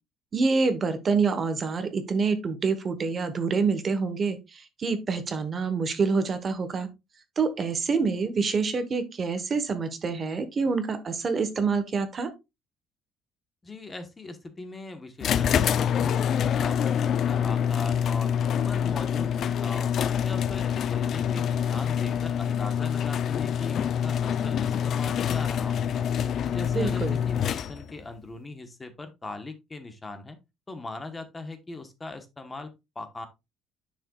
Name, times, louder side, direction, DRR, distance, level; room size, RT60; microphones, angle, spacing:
voice 1, 0.3-6.9 7.4-12.3 26.7-27.2, right 4 dB, 30° right, 10 dB, 1.0 m, -27 dB
voice 2, 13.6-15.5 15.8-19.9 20.2-26.0 26.4-30.4 30.7-33.3, left 2 dB, 15° left, 8 dB, 1.0 m, -40 dB
sound 1, 15.2-28.0, left 8 dB, 45° left, 0.4 m, -26 dB
9.8 x 6.2 x 2.3 m, 0.22 s
cardioid pair, 160°, 0 cm